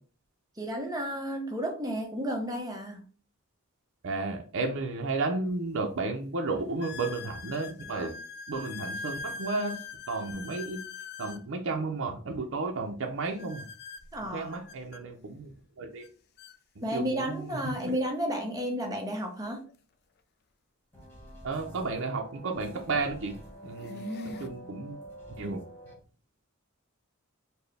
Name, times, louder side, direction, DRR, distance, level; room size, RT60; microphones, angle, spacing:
voice 1, 0.6-3.0 14.1-14.5 16.8-19.6 23.9-24.6, equal, 15° right, 1 dB, 0.8 m, -32 dB
voice 2, 4.0-8.1 8.5-9.8 10.1-10.8 11.2-13.6 14.3-16.0 16.9-18.0 21.4-23.4 23.6-24.0 24.4-25.0 25.4-25.6, right 3 dB, 60° right, 2 dB, 0.6 m, -33 dB
sound 1, 5.1-5.2 5.8-5.9 6.8-11.5 13.4-15.0 16.0-16.1 16.4-16.6 17.4-17.5 19.7-19.8 21.8-21.9 22.7-23.0 23.5-24.5, left 4 dB, 50° left, 0.4 m, -42 dB
sound 2, 20.9-25.9, right 1 dB, 10° left, 1.2 m, -47 dB
4.3 x 2.1 x 3.3 m, 0.39 s
head